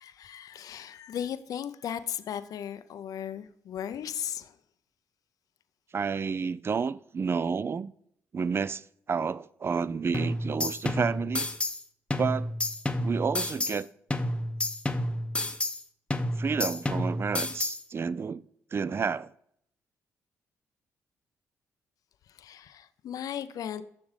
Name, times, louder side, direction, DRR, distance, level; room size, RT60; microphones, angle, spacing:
voice 1, 0.0-4.6 22.3-23.8, left 9 dB, 65° left, 0.4 m, -36 dB
voice 2, 5.9-7.9 8.3-11.5 12.2-12.5 13.0-13.9 16.4-18.4 18.7-19.3, right 5 dB, 40° right, 0.3 m, -30 dB
sound 1, 10.1-11.8 12.1-13.8 14.1-15.8 16.1-17.8, left 1 dB, 15° left, 0.7 m, -30 dB
7.3 x 6.0 x 3.2 m
hypercardioid pair, 45°, 7 cm